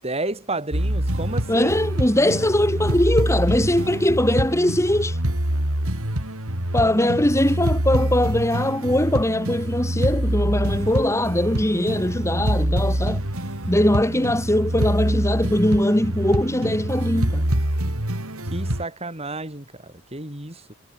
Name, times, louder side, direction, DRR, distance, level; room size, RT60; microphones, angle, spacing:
voice 1, 0.0-1.8 18.5-20.7, right 2 dB, 25° right, 7.3 m, -31 dB
sound 1, 0.7-18.8, right 1 dB, 70° right, 4.5 m, -25 dB
voice 2, 1.5-5.2 6.7-13.2 13.7-17.5, left 1 dB, 15° left, 2.7 m, -21 dB
head